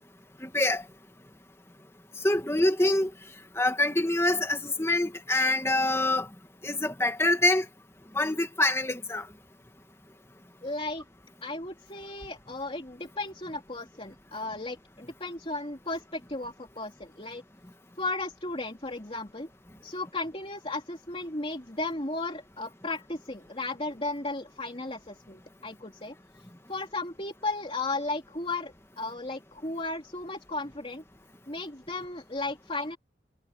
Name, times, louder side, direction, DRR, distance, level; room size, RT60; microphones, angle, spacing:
voice 1, 0.4-0.8 2.2-3.1 3.6-6.3 6.6-7.7 8.1-9.3, left 2 dB, 15° left, 1.9 m, -25 dB
voice 2, 10.6-11.0 11.4-17.4 18.0-19.5 19.8-26.2 26.7-31.0 31.5-33.0, left 2 dB, 30° left, 3.5 m, -35 dB
head